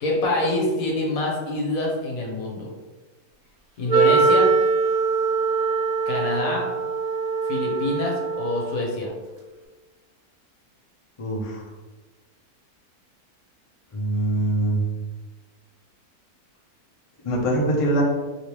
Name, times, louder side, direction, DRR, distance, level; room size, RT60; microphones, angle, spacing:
voice 1, 0.0-2.7 3.8-4.5 6.1-6.7 7.5-9.1, left 2 dB, 65° left, -2 dB, 1.2 m, -25 dB
Wind instrument woodwind instrument, 3.9-9.0, right 4 dB, 80° right, 0.5 m, -22 dB
voice 2, 11.2-11.6 13.9-14.8 17.2-18.0, right 1 dB, 50° left, -3 dB, 0.3 m, -23 dB
3.3 x 2.8 x 2.9 m, 1.2 s
omnidirectional pair, 1.6 m